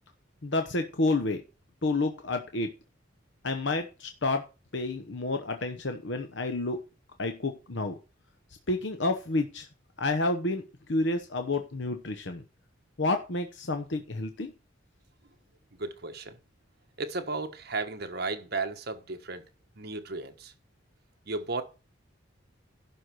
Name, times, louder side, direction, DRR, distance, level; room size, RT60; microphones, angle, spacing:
voice 1, 0.4-1.4 1.8-2.7 3.4-4.4 4.7-6.8 7.2-8.0 8.7-9.7 10.0-10.6 10.9-12.4 13.0-14.5, left 2 dB, 60° left, 0.9 m, -29 dB
voice 2, 15.8-16.4 17.0-19.4 19.8-20.5 21.3-21.6, right 3 dB, 50° right, 1.3 m, -34 dB
11.5 x 4.6 x 6.4 m
head